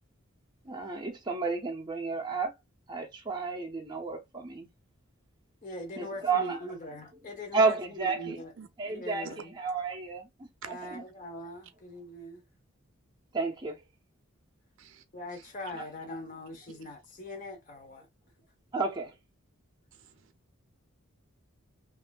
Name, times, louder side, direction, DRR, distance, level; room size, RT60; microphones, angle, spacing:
voice 1, 0.7-2.5 2.9-4.7 6.0-6.6 7.5-8.3 8.8-9.3 9.6-11.0 13.3-13.8 15.8-15.9 18.7-19.1, right 4 dB, 20° right, 0.6 m, -31 dB
voice 2, 5.6-8.5 8.9-9.5 10.7-12.4 15.1-18.1, left 1 dB, 40° left, 0.7 m, -41 dB
voice 3, 19.9-20.3, right 6 dB, 60° right, 0.5 m, -46 dB
3.0 x 2.5 x 2.2 m
head